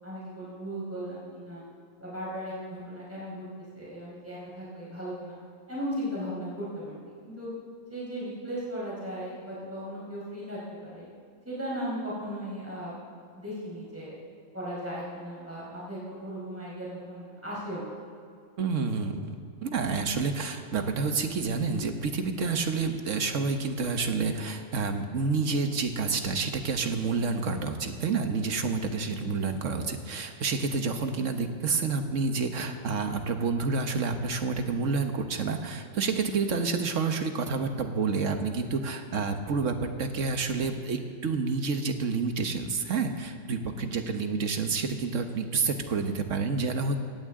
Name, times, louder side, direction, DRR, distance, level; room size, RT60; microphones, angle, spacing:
voice 1, 0.0-1.6 2.0-3.5 3.7-5.4 5.7-7.5 7.9-11.0 11.4-12.9 13.3-14.1 14.5-17.8 29.0-29.2 43.7-44.1, equal, 10° right, -8 dB, 4.6 m, -37 dB
voice 2, 18.6-46.9, right 4 dB, 70° right, 6 dB, 1.5 m, -29 dB
17.5 x 15.5 x 3.7 m, 2.4 s
omnidirectional pair, 1.3 m